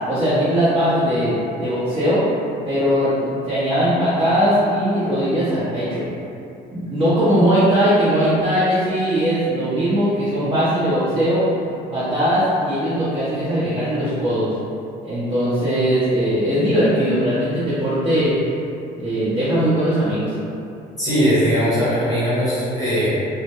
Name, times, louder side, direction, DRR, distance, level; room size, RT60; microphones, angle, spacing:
voice 1, 0.1-2.2 2.6-6.0 6.7-11.4 11.9-14.5 15.0-18.4 19.0-20.3, equal, 30° right, -13 dB, 0.7 m, -19 dB
voice 2, 21.0-23.3, equal, 20° left, -11 dB, 0.8 m, -19 dB
2.1 x 2.0 x 2.9 m, 2.6 s
cardioid pair, 110°, 17 cm